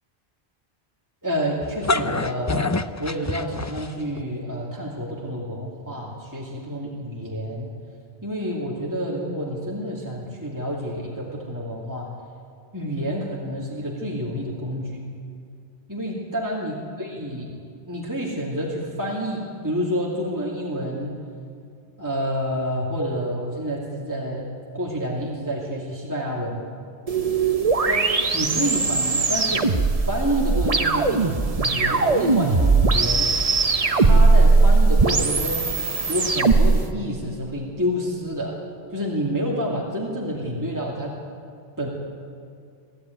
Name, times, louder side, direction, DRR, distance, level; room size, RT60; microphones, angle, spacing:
voice 1, 1.2-2.7 3.0-7.7 8.2-12.1 12.7-15.0 15.9-17.6 17.9-21.1 22.0-24.5 24.7-26.6 27.9-28.0 28.3-29.6 29.9-33.3 33.9-35.7 36.1-38.6 38.9-41.1 41.8-41.9, equal, 15° right, -3 dB, 2.5 m, -28 dB
sound 1, 1.6-4.2, left 3 dB, 25° left, 0.4 m, -26 dB
sound 2, 27.1-36.8, right 3 dB, 35° right, 1.0 m, -19 dB
23.0 x 14.5 x 9.4 m, 2.3 s
omnidirectional pair, 1.1 m